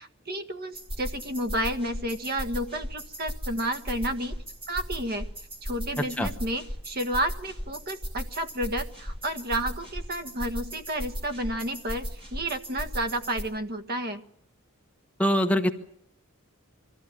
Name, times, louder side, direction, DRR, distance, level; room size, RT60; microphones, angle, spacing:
voice 1, 0.0-4.4 4.7-5.3 5.6-14.2, right 1 dB, 45° right, 8 dB, 1.7 m, -31 dB
sound 1, 0.7-13.4, equal, 25° right, 7.2 m, -37 dB
voice 2, 15.2-15.7, equal, 5° left, 5 dB, 1.1 m, -23 dB
23.5 x 14.5 x 8.8 m, 0.73 s
head